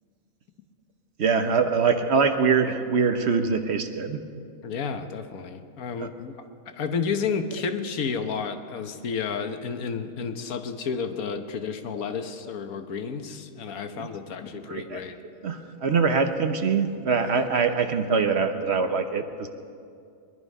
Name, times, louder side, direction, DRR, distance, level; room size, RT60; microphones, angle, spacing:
voice 1, 1.2-4.2 6.0-6.1 14.0-14.1 14.5-15.0 15.4-19.5, right 5 dB, 55° right, 7 dB, 1.0 m, -24 dB
voice 2, 4.6-6.3 6.7-15.1, left 5 dB, 85° left, 8 dB, 1.4 m, -31 dB
22.0 x 11.0 x 5.4 m, 2.4 s
omnidirectional pair, 1.5 m